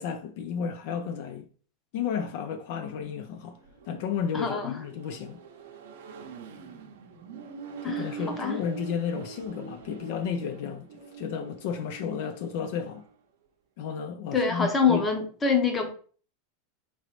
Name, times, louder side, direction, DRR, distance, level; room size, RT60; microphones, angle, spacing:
voice 1, 0.0-1.5 1.9-3.6 3.9-5.4 7.8-10.9 11.2-13.0 13.8-15.1, left 7 dB, 60° left, 0.4 m, -32 dB
Accelerating revving vroom, 2.7-13.1, right 5 dB, 80° right, 0.6 m, -43 dB
voice 2, 4.3-4.7 7.8-8.6 14.3-15.9, left 5 dB, 15° left, 0.7 m, -25 dB
3.8 x 3.0 x 3.1 m
supercardioid pair, 150°, 0 cm